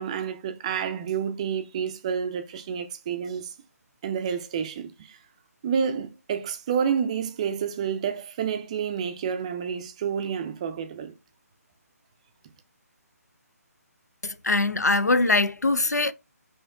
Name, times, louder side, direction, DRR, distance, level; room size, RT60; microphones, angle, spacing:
voice 1, 0.0-3.5 4.0-5.2 5.6-11.1, right 7 dB, 25° right, 0.4 m, -29 dB
voice 2, 14.2-16.1, left 3 dB, 85° left, 0.4 m, -22 dB
5.5 x 2.8 x 2.4 m
figure-of-eight pair, 145°, 9 cm